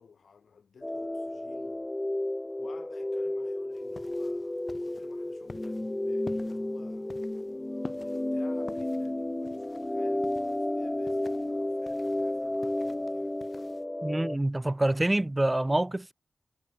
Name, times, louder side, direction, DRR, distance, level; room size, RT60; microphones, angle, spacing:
voice 1, 0.0-1.9 2.6-7.1 8.0-13.4, left 6 dB, 80° left, 2.7 m, -55 dB
sound 1, 0.8-14.4, left 1 dB, 20° left, 0.4 m, -32 dB
sound 2, 3.7-13.8, left 3 dB, 45° left, 5.8 m, -50 dB
voice 2, 14.0-16.1, right 1 dB, 25° right, 0.7 m, -26 dB
cardioid pair, 45°, 0 cm